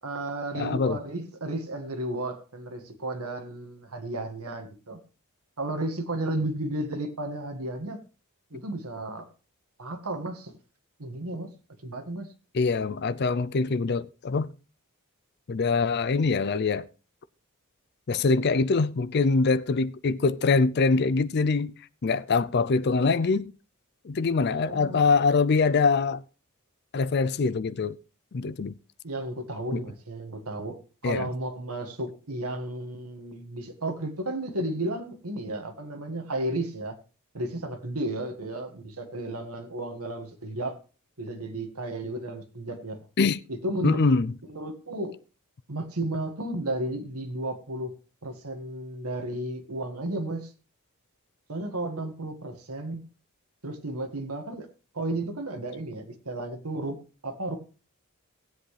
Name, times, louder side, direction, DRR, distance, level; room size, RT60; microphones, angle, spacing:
voice 1, 0.0-5.0 5.6-8.0 8.5-9.3 9.8-10.6 11.0-11.5 11.8-12.3 24.5-25.0 29.0-30.8 31.0-36.9 37.3-40.8 41.2-43.0 43.5-44.1 44.5-45.1 45.7-47.9 48.2-50.5 51.5-53.0 53.6-54.7 54.9-57.0 57.2-57.6, right 1 dB, 80° right, 1.8 m, -33 dB
voice 2, 0.5-1.0 12.5-14.5 15.5-16.9 18.1-21.7 22.0-23.5 24.0-26.2 26.9-28.0 28.3-28.7 29.7-29.8 31.0-31.3 43.2-43.4 43.8-44.3, left 4 dB, 45° left, 0.4 m, -24 dB
18.0 x 7.9 x 3.3 m
head